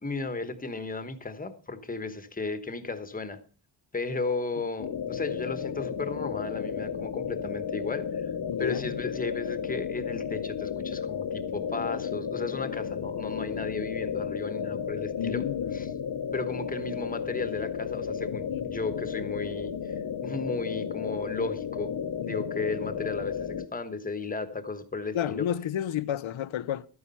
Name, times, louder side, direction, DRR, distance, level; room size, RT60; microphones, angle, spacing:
voice 1, 0.0-3.4 3.9-8.3 8.6-15.5 15.7-15.9 16.3-19.9 20.2-21.9 22.2-25.5, left 3 dB, 20° left, 1.2 m, -34 dB
sound 1, 4.8-23.7, left 7 dB, 50° left, 0.9 m, -33 dB
voice 2, 8.5-8.9 15.2-15.7 18.3-18.7 22.2-22.4 25.1-26.9, left 10 dB, 85° left, 0.7 m, -31 dB
13.0 x 9.5 x 5.6 m
wide cardioid pair, 175°, 45 cm